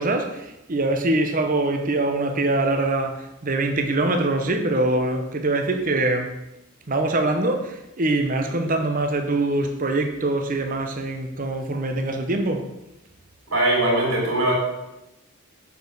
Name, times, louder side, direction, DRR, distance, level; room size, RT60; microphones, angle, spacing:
voice 1, 0.0-6.4 6.9-12.7, right 2 dB, 40° right, 0.8 m, -23 dB
voice 2, 13.5-14.5, right 1 dB, 80° right, 3.3 m, -21 dB
6.9 x 5.2 x 6.3 m
head